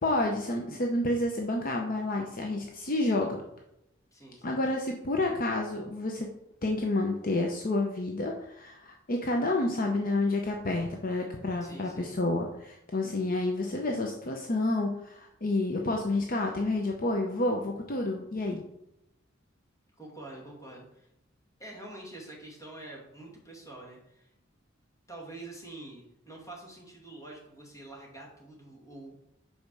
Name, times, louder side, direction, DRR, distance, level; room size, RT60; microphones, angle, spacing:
voice 1, 0.0-3.4 4.4-6.3 6.6-18.6, left 2 dB, 45° left, 2 dB, 0.8 m, -29 dB
voice 2, 4.1-4.6 11.6-12.1 20.0-21.1 21.6-24.3 25.1-29.2, right 2 dB, 15° left, -2 dB, 2.1 m, -46 dB
5.4 x 5.0 x 6.1 m, 0.81 s
head